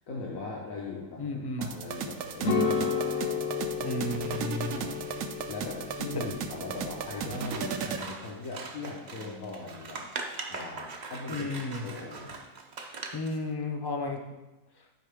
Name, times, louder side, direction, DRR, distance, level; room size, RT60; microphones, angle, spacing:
voice 1, 0.1-3.2 4.6-5.2 5.5-10.0 10.5-12.4, left 3 dB, 80° left, -4 dB, 1.5 m, -40 dB
voice 2, 1.2-1.7 3.8-5.0 6.1-6.2 11.3-11.8 13.1-14.2, left 2 dB, 25° left, 3 dB, 0.6 m, -33 dB
sound 1, 1.6-8.1, right 7 dB, 80° right, 1.0 m, -36 dB
sound 2, 2.4-7.6, left 5 dB, 65° left, 1.2 m, -32 dB
Scissors, 7.3-13.4, right 4 dB, 45° right, 0.6 m, -41 dB
12.0 x 4.7 x 3.5 m, 1.1 s
omnidirectional pair, 1.4 m